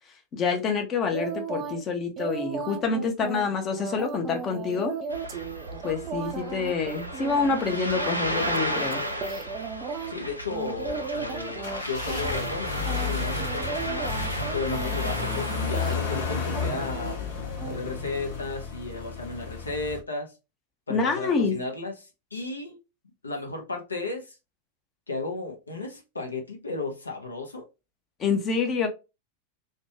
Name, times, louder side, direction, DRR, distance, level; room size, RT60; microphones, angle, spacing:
voice 1, 0.3-4.9 5.8-9.0 20.9-21.6 28.2-28.9, left 5 dB, 25° left, 0.7 m, -27 dB
sound 1, 1.1-1.8 2.2-10.1 10.5-11.8 12.1-12.6 12.9-16.2 16.5-17.2 17.6-17.8, right 5 dB, 30° right, 0.4 m, -36 dB
Ocean, 5.1-16.4, equal, 90° right, 0.4 m, -34 dB
voice 2, 10.1-14.2 14.5-17.2 17.6-20.3 20.9-21.9 22.3-22.8 23.2-24.4 25.1-27.7, left 3 dB, 75° left, 0.6 m, -34 dB
sound 2, 10.9-20.0, left 5 dB, 55° left, 0.9 m, -32 dB
2.6 x 2.2 x 2.8 m
figure-of-eight pair, 90°, 0 cm